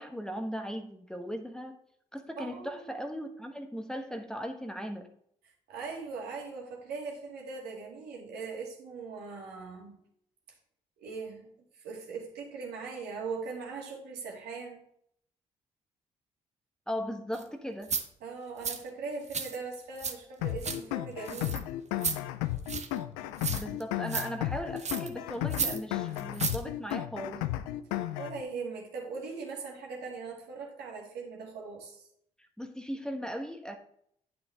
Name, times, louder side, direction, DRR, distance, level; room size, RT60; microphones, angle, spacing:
voice 1, 0.0-1.8 2.1-5.1 16.9-18.0 23.5-27.4 32.6-33.8, equal, 5° left, 5 dB, 1.2 m, -38 dB
voice 2, 2.4-2.8 5.7-10.0 11.0-11.5 11.8-14.8 18.2-21.6 28.2-32.1, right 4 dB, 70° right, -1 dB, 2.4 m, -40 dB
sound 1, 17.3-17.4 17.8-18.0 18.6-18.8 19.3-20.1 20.4-20.8 21.2-21.6 22.0-22.2 22.7-23.0 23.4-23.8 24.1-24.3 24.8-25.1 25.5-25.8 26.1-26.6 26.9-27.0, right 5 dB, 40° right, 1.2 m, -33 dB
sound 2, 20.4-28.4, left 14 dB, 80° left, 0.5 m, -34 dB
9.3 x 7.8 x 3.6 m, 0.69 s
hypercardioid pair, 45°, 17 cm